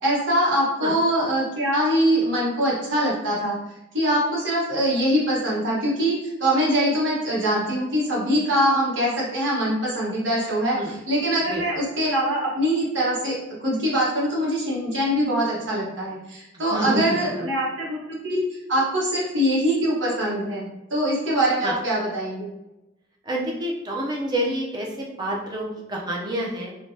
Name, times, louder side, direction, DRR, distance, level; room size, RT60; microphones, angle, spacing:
voice 1, 0.0-3.6 3.9-22.5, equal, 75° right, -6 dB, 1.1 m, -23 dB
voice 2, 16.7-17.5 21.6-21.7 23.3-26.7, right 1 dB, 20° right, -2 dB, 0.5 m, -28 dB
3.3 x 2.2 x 2.6 m, 0.97 s
head